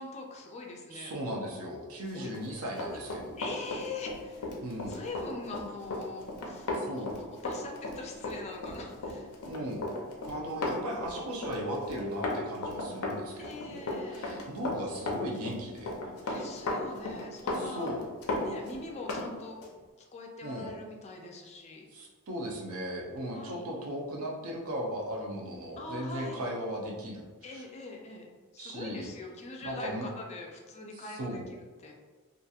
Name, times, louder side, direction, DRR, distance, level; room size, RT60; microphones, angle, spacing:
voice 1, 0.0-1.1 2.1-2.3 2.8-3.0 3.4-4.6 4.9-9.3 13.4-14.4 16.3-17.9 18.4-19.6 20.1-21.9 23.3-23.6 25.8-26.5 27.4-31.9, left 3 dB, 30° left, 1 dB, 0.4 m, -42 dB
voice 2, 0.9-3.4 4.6-5.0 6.7-7.1 9.4-9.9 10.2-15.9 16.2-16.3 17.5-18.0 20.4-20.7 21.9-27.7 28.6-29.1 29.6-30.1 30.9-31.5, equal, 70° right, -1 dB, 0.6 m, -37 dB
Run, 2.2-19.3 19.6-19.8, left 2 dB, 90° left, 0.5 m, -35 dB
2.8 x 2.4 x 2.3 m, 1.3 s
head